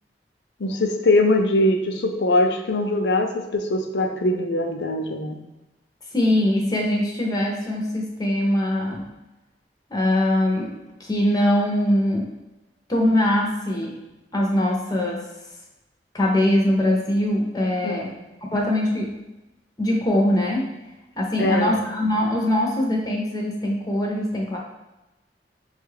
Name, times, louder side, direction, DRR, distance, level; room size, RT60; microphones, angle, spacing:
voice 1, 0.6-5.4 17.8-18.1 21.4-21.8, left 2 dB, 75° left, 4 dB, 0.5 m, -22 dB
voice 2, 6.1-9.1 9.9-12.3 12.9-14.0 14.3-15.2 16.1-18.1 18.5-19.1 19.8-20.7 21.2-24.6, left 1 dB, 20° left, -2 dB, 0.6 m, -22 dB
6.0 x 2.3 x 3.2 m, 1.0 s
head